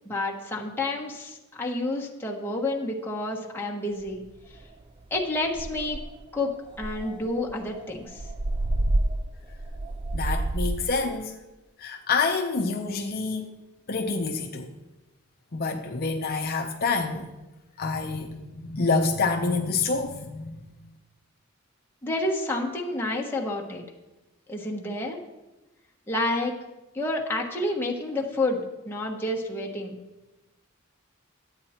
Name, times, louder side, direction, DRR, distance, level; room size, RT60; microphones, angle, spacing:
voice 1, 0.0-4.2 5.1-6.0 6.3-6.5 6.8-8.2 22.0-23.8 24.5-25.2 26.1-26.5 26.9-28.6 28.8-30.0, left 2 dB, 10° left, 1.4 m, -29 dB
sound 1, 4.1-4.2 4.6-4.8 5.2-5.3 5.5-6.2 6.8-11.0, right 1 dB, 20° right, 0.4 m, -29 dB
voice 2, 10.1-11.3 11.8-13.5 13.9-14.7 15.5-17.3 17.8-20.6, left 4 dB, 45° left, 0.7 m, -27 dB
12.0 x 8.9 x 4.3 m
head